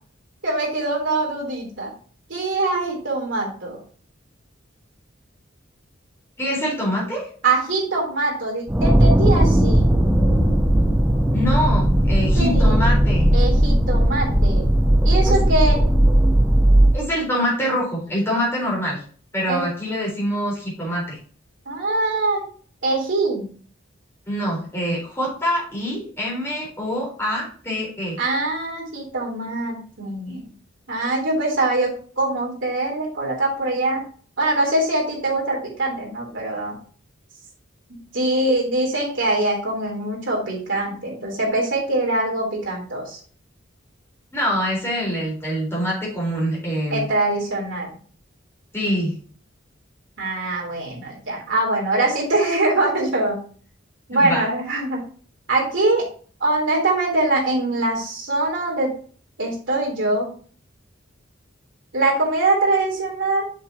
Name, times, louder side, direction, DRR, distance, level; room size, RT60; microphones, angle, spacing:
voice 1, 0.4-1.9 2.3-3.8 7.4-9.9 12.4-12.8 13.3-14.7 15.0-15.8 19.5-19.6 21.6-22.4 22.8-23.5 28.2-30.5 30.9-34.0 34.4-36.8 38.1-43.2 46.9-47.9 50.2-53.4 54.1-55.0 55.5-56.1 56.4-58.9 59.4-60.3 61.9-63.4, right 2 dB, 70° right, -2 dB, 3.4 m, -23 dB
voice 2, 6.4-7.3 11.3-13.3 15.3-15.4 16.9-19.0 19.3-21.2 24.3-28.2 44.3-47.1 48.7-49.1 54.1-54.4, equal, 15° left, -4 dB, 3.9 m, -25 dB
sound 1, 8.7-17.0, right 1 dB, 10° right, 0.7 m, -17 dB
7.3 x 6.6 x 2.8 m, 0.43 s
head